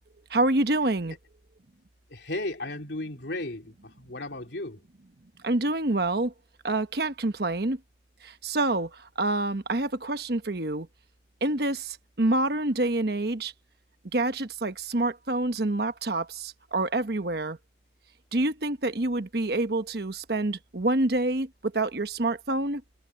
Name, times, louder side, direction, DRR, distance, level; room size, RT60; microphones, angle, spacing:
voice 1, 0.3-1.1 5.4-6.3 6.6-7.8 8.2-10.9 11.4-13.5 14.1-17.6 18.3-22.8, right 2 dB, 55° right, 1.2 m, -27 dB
voice 2, 2.1-4.8, left 2 dB, 70° left, 2.9 m, -35 dB
head